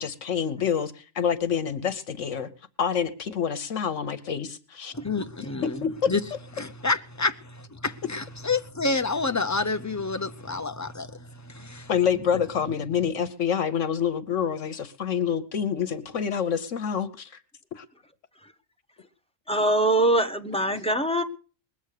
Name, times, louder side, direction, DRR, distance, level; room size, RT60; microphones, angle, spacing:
voice 1, 0.0-2.5 2.8-4.9 5.8-6.2 11.9-17.3 17.7-17.8, left 7 dB, 70° left, 1.2 m, -27 dB
voice 2, 4.9-5.8 6.1-6.2 6.6-11.9, left 3 dB, 20° left, 0.4 m, -29 dB
voice 3, 19.5-21.2, right 1 dB, 5° left, 1.0 m, -23 dB
21.0 x 8.0 x 6.6 m
omnidirectional pair, 1.4 m